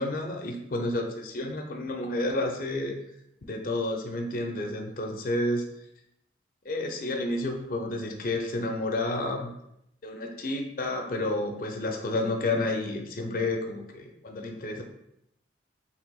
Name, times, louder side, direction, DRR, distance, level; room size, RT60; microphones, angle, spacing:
voice 1, 0.0-3.0 3.4-5.6 6.6-9.5 10.0-14.8, left 2 dB, 50° left, 3 dB, 0.5 m, -30 dB
4.6 x 3.3 x 2.3 m, 0.79 s
head